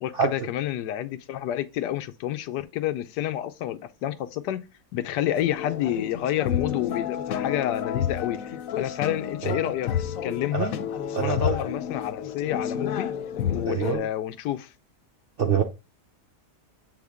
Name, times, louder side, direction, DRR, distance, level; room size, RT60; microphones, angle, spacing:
voice 1, 0.0-4.6 4.9-9.9 10.2-10.7 11.1-13.1 13.5-14.7, left 12 dB, 90° left, 1.2 m, -29 dB
sound 1, 5.4-14.0, left 9 dB, 65° left, 0.9 m, -30 dB
voice 2, 11.1-11.6 13.7-14.1 15.4-15.6, right 7 dB, 65° right, 0.5 m, -25 dB
7.6 x 3.6 x 3.5 m
omnidirectional pair, 1.7 m